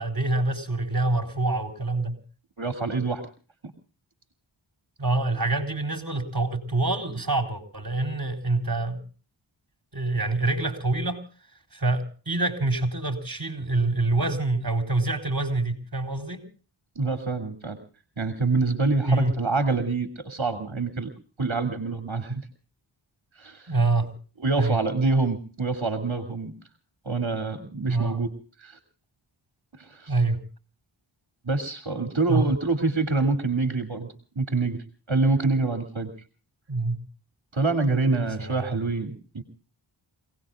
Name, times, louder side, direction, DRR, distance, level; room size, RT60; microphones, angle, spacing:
voice 1, 0.0-2.2 5.0-9.0 9.9-11.2 11.7-16.4 19.1-19.3 23.7-24.1 24.5-24.8 27.9-28.3 30.1-30.4 32.3-32.4 36.7-37.0 38.1-38.9, right 2 dB, 45° right, 5 dB, 4.2 m, -26 dB
voice 2, 2.6-3.2 16.9-17.8 18.2-21.1 21.4-22.5 23.4-23.7 24.4-26.5 27.0-28.3 28.6-28.8 29.7-30.1 31.4-34.1 34.3-34.8 35.1-36.1 37.5-39.4, right 3 dB, 65° right, 6 dB, 2.8 m, -26 dB
29.0 x 18.5 x 2.5 m, 0.39 s
wide cardioid pair, 40°, 49 cm